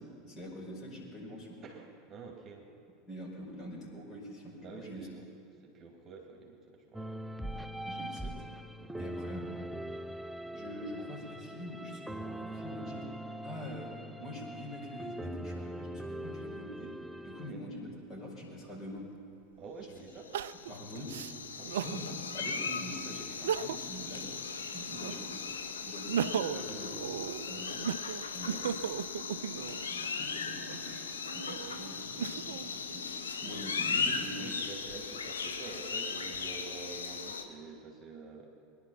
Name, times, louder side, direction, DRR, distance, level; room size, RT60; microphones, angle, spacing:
voice 1, 0.0-1.6 3.1-5.1 7.4-8.4 9.0-9.7 10.5-13.1 13.4-17.0 17.2-19.1 19.8-19.9 20.7-21.2 21.8-24.3 24.7-25.5 25.8-27.1 27.5-27.8 28.3-28.8 29.1-31.0 31.3-33.1 33.4-34.6, equal, 35° left, -1 dB, 5.1 m, -44 dB
voice 2, 1.6-2.7 4.6-5.2 5.6-7.2 8.8-9.1 17.5-17.6 19.6-20.3 21.6-22.2 25.1-25.2 27.5-27.6 28.4-28.7 34.3-38.5, right 4 dB, 30° right, 0 dB, 2.6 m, -48 dB
sound 1, 6.9-17.5, right 1 dB, 5° right, 0.4 m, -42 dB
Crying sobbing, 19.0-19.1 20.3-22.0 22.5-22.6 23.3-24.0 24.4-25.4 25.9-29.9 30.6-32.7 33.2-34.0, right 8 dB, 65° right, 0.4 m, -37 dB
sound 2, 20.2-37.4, left 5 dB, 75° left, 1.0 m, -38 dB
22.5 x 11.0 x 5.7 m, 2.6 s
figure-of-eight pair, 80°, 0 cm